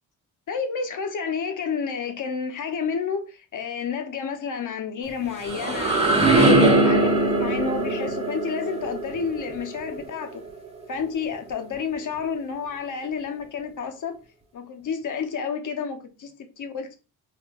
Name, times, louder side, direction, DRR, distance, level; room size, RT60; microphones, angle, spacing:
voice 1, 0.5-10.4 10.9-14.2 14.5-17.0, left 6 dB, 55° left, 0.8 m, -30 dB
sound 1, 5.1-10.8, right 2 dB, 15° right, 1.2 m, -22 dB
3.3 x 3.2 x 2.3 m
cardioid pair, 75°, 36 cm